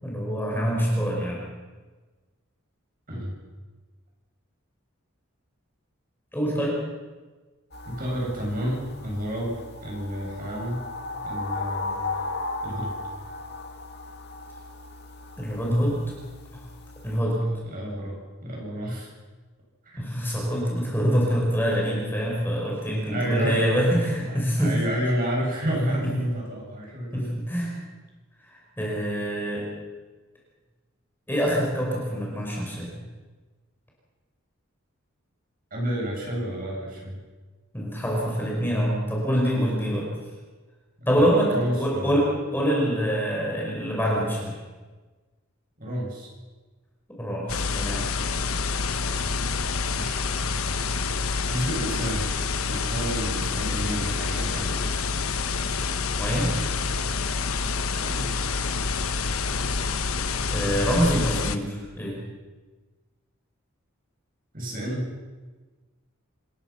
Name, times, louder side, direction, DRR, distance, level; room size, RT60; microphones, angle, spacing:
voice 1, 0.0-1.4 6.3-6.8 15.4-16.0 16.5-16.7 17.0-17.4 20.0-24.8 26.0-26.1 27.1-27.7 28.5-29.7 31.3-32.9 37.7-40.1 41.1-44.6 47.2-48.1 56.2-56.5 60.5-62.2, equal, 10° left, -3 dB, 5.4 m, -25 dB
sound 1, 7.7-17.2, left 2 dB, 50° left, 2.0 m, -36 dB
voice 2, 7.8-10.8 11.2-12.0 12.6-12.9 17.3-19.1 19.8-20.0 23.1-27.3 35.7-37.2 41.1-42.3 45.8-46.3 49.9-50.2 51.5-54.9 57.9-58.3 64.5-65.1, equal, 40° right, -2 dB, 7.7 m, -30 dB
sound 2, 47.5-61.6, left 4 dB, 85° left, 1.2 m, -27 dB
27.5 x 16.0 x 6.0 m, 1.3 s
head